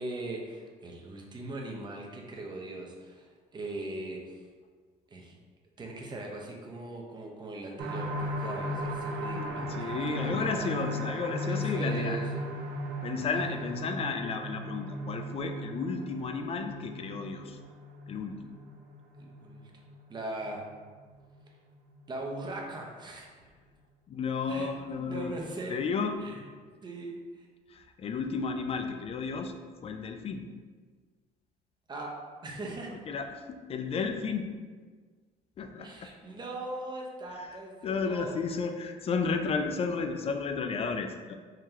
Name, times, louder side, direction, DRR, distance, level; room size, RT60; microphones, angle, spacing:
voice 1, 0.0-4.3 5.1-5.4 5.8-10.7 11.5-12.5 13.3-13.4 19.2-19.6 20.1-20.6 22.1-23.3 24.5-24.7 25.0-25.8 26.2-26.4 26.8-27.5 31.9-32.1 32.4-33.0 35.8-38.3, right 2 dB, 25° right, 0 dB, 0.7 m, -40 dB
sound 1, 7.8-21.3 21.7-21.8 22.2-22.3, equal, 75° right, 0.6 m, -36 dB
voice 2, 9.3-12.2 13.0-17.6 18.1-18.4 24.1-25.4 25.7-26.2 27.7-29.5 29.8-30.4 33.1-34.5 35.6-36.1 37.4-41.3, left 5 dB, 35° left, 6 dB, 0.4 m, -33 dB
3.8 x 3.0 x 2.8 m, 1.5 s
cardioid pair, 110°, 17 cm